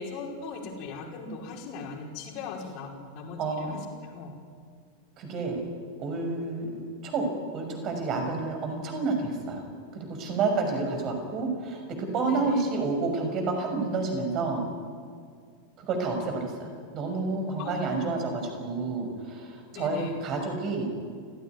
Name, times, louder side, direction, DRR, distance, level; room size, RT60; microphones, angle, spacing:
voice 1, 0.0-4.3 10.7-11.1 12.2-12.6 17.6-18.2 19.7-20.2, left 4 dB, 40° left, 1 dB, 5.0 m, -39 dB
voice 2, 3.4-3.8 5.2-5.6 6.0-7.3 7.5-9.6 9.9-14.6 15.8-16.7 16.9-20.9, right 3 dB, 35° right, 4 dB, 6.2 m, -29 dB
28.5 x 16.5 x 9.5 m, 2.1 s
figure-of-eight pair, 90°, 0 cm